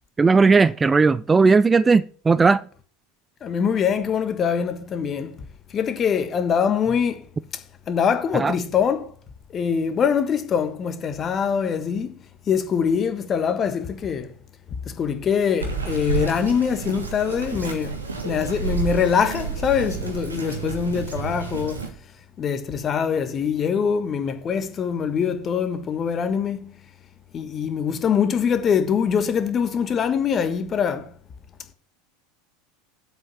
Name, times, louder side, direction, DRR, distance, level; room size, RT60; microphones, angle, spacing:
voice 1, 0.2-2.6 8.3-8.5, right 4 dB, 15° right, 0.3 m, -17 dB
voice 2, 3.4-5.4 5.7-7.2 7.9-9.1 9.5-12.1 12.5-14.3 14.9-18.0 18.2-21.8 22.4-26.8 27.3-31.1, left 7 dB, 30° left, 1.3 m, -23 dB
Bird vocalization bird call bird song, 15.6-21.9, right 5 dB, 80° right, 1.6 m, -30 dB
7.8 x 5.6 x 6.9 m
figure-of-eight pair, 75°, 0 cm